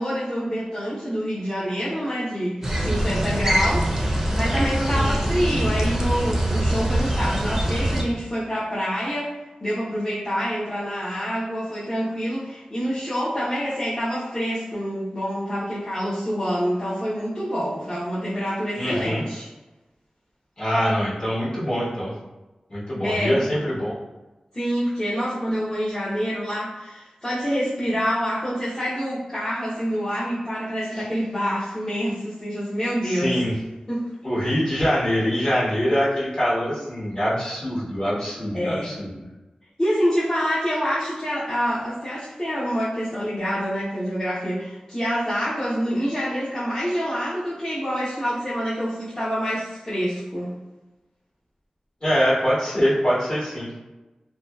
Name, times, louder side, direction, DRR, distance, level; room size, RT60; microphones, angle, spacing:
voice 1, 0.0-9.3 9.6-19.5 23.0-23.4 24.5-33.4 33.9-34.1 38.5-38.9 39.8-50.5, equal, 25° left, -11 dB, 0.7 m, -26 dB
sound 1, 2.6-8.0, right 1 dB, 15° right, 0.5 m, -23 dB
voice 2, 18.7-19.2 20.6-22.1 22.7-23.9 30.9-31.0 33.0-33.5 34.2-39.2 52.0-53.7, equal, 40° left, -9 dB, 1.2 m, -24 dB
2.7 x 2.2 x 2.3 m, 1.1 s
wide cardioid pair, 60°, 2 cm